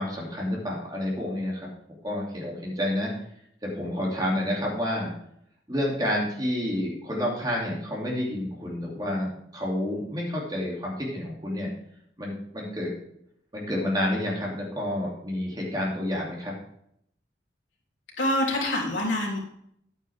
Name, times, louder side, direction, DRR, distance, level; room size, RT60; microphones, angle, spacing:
voice 1, 0.0-3.1 3.6-5.1 5.7-11.7 12.2-12.9 13.5-16.5, left 1 dB, 20° right, -3 dB, 2.9 m, -29 dB
voice 2, 18.2-19.4, left 1 dB, 85° left, -2 dB, 3.3 m, -25 dB
10.5 x 9.1 x 3.6 m, 0.70 s
head